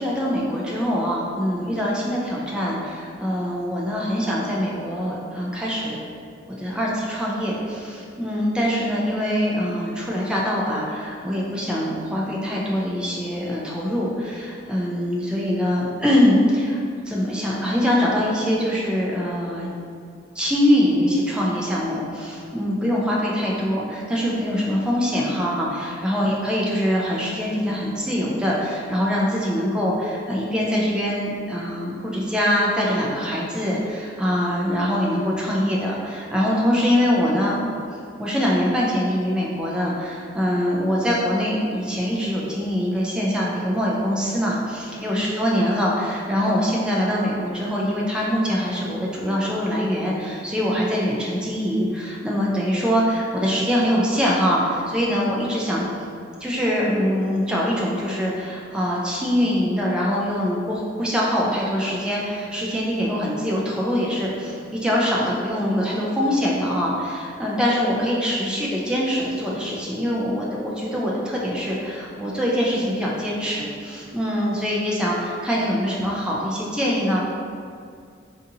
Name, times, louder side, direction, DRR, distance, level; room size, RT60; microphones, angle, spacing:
voice 1, 0.0-6.0 6.6-16.8 17.1-19.7 20.4-37.7 38.2-55.9 56.4-77.2, equal, 5° right, -5 dB, 0.4 m, -23 dB
3.8 x 2.6 x 2.7 m, 2.3 s
head